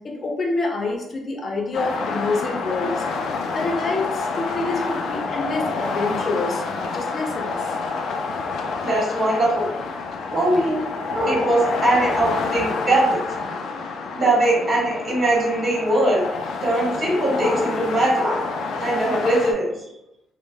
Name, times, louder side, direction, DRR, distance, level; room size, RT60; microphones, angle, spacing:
voice 1, 0.0-3.0 3.5-7.7, left 3 dB, 45° left, 0 dB, 0.6 m, -27 dB
sound 1, 1.7-19.5, left 4 dB, 75° left, 0.3 m, -28 dB
voice 2, 8.8-9.7 10.3-10.8 11.1-13.2 14.1-16.2 16.6-18.5 18.8-19.7, right 1 dB, 45° right, -5 dB, 1.4 m, -21 dB
3.2 x 2.1 x 2.2 m, 0.85 s
cardioid pair, 90°, 0 cm